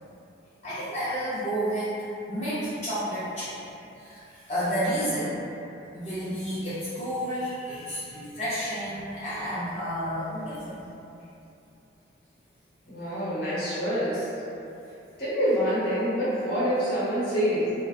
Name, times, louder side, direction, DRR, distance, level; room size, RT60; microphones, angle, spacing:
voice 1, 0.6-1.9 2.3-3.5 4.0-5.4 5.9-10.8, equal, 35° left, -12 dB, 0.4 m, -31 dB
voice 2, 12.9-14.3 15.2-17.7, equal, 50° left, -10 dB, 0.8 m, -26 dB
2.3 x 2.1 x 2.7 m, 2.8 s
head